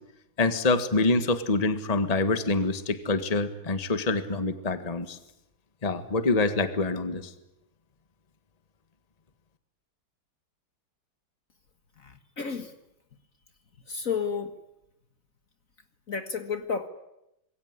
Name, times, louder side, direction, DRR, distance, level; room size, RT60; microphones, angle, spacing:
voice 1, 0.4-5.2 5.8-7.3, left 3 dB, 20° left, 10 dB, 1.6 m, -26 dB
voice 2, 12.0-12.7 13.9-14.5 16.1-16.9, left 6 dB, 45° left, 9 dB, 1.8 m, -31 dB
26.5 x 22.5 x 9.7 m, 0.87 s
omnidirectional pair, 2.1 m